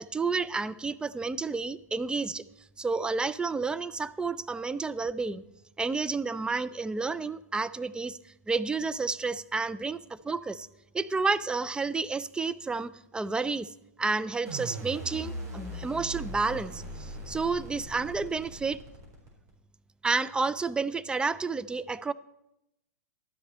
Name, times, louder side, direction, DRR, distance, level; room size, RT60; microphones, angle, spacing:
voice 1, 0.0-2.4 2.8-5.4 5.8-8.2 8.5-10.7 10.9-13.7 14.0-18.8 20.0-22.1, right 4 dB, 10° right, 14 dB, 0.4 m, -30 dB
sound 1, 14.5-19.5, right 1 dB, 35° right, 4.3 m, -40 dB
12.0 x 9.7 x 4.3 m, 0.85 s
hypercardioid pair, 105°, 9 cm